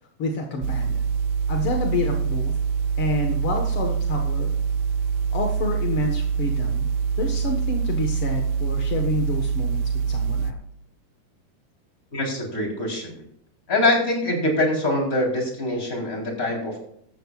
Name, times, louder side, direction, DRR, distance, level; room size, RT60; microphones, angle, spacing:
voice 1, 0.2-1.0 1.5-2.5 3.0-4.5 5.3-6.9 7.2-10.6, left 3 dB, 55° left, 2 dB, 1.5 m, -28 dB
sound 1, 0.6-10.5, right 6 dB, 80° right, 1.9 m, -25 dB
voice 2, 12.1-13.2 13.7-16.8, left 1 dB, 20° left, 0 dB, 3.9 m, -24 dB
15.5 x 13.0 x 2.4 m, 0.69 s
omnidirectional pair, 4.6 m